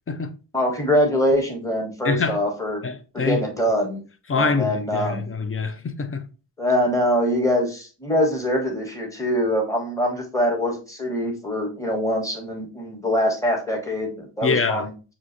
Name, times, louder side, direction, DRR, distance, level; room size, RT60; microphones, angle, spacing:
voice 1, 0.5-2.8 3.1-4.0 4.3-5.2 6.6-14.9, equal, 5° left, 1.1 m, -23 dB
voice 2, 2.0-2.4 2.8-3.4 4.3-6.2 14.4-14.9, left 4 dB, 30° left, 0.5 m, -25 dB
6.2 x 2.5 x 2.5 m
wide cardioid pair, 80°, 49 cm